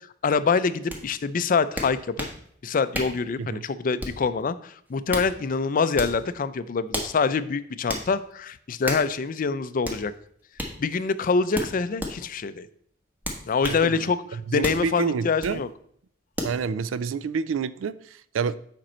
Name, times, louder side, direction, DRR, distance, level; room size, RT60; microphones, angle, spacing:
voice 1, 0.2-2.3 2.6-10.1 10.8-12.7 13.5-14.2 14.5-15.7, left 5 dB, 45° left, 14 dB, 0.4 m, -25 dB
sound 1, 0.9-1.0 1.8-2.4 2.9-3.2 4.0-4.3 4.9-5.3 5.9-6.2 6.9-7.1 7.9-8.1 8.8-9.1 9.8-10.0 10.6-10.7 11.5-12.1 13.2-13.8 14.6-14.8 15.4-15.6 16.4-16.6, equal, 10° right, 1.2 m, -31 dB
voice 2, 13.7-15.6 16.4-18.6, right 5 dB, 85° right, 16 dB, 0.4 m, -29 dB
7.6 x 5.2 x 4.3 m, 0.65 s
head